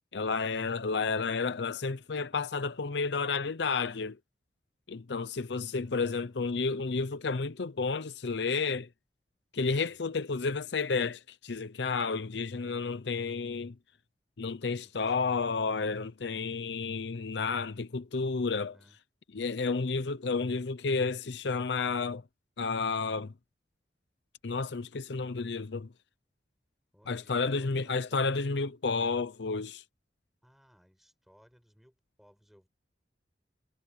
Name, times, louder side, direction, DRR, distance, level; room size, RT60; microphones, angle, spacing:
voice 1, 0.1-4.2 4.9-8.9 9.5-13.7 14.4-18.8 19.3-22.2 22.6-23.3 24.4-25.9 27.1-29.8, left 4 dB, 75° left, 0.7 m, -31 dB
voice 2, 5.7-6.9 9.7-10.1 14.8-15.5 16.2-16.5 18.7-19.0 26.9-28.2 30.4-32.7, equal, ahead, 5.2 m, -62 dB
head